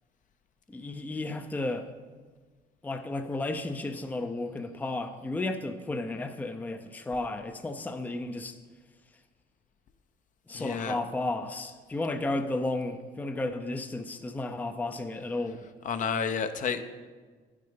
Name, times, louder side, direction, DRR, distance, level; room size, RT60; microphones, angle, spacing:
voice 1, 0.7-1.9 2.8-8.5 10.5-15.6, left 2 dB, 10° left, 7 dB, 0.5 m, -33 dB
voice 2, 10.5-11.0 15.8-16.8, left 6 dB, 50° left, 9 dB, 0.7 m, -30 dB
9.8 x 6.6 x 5.1 m, 1.4 s
cardioid pair, 110°, 17 cm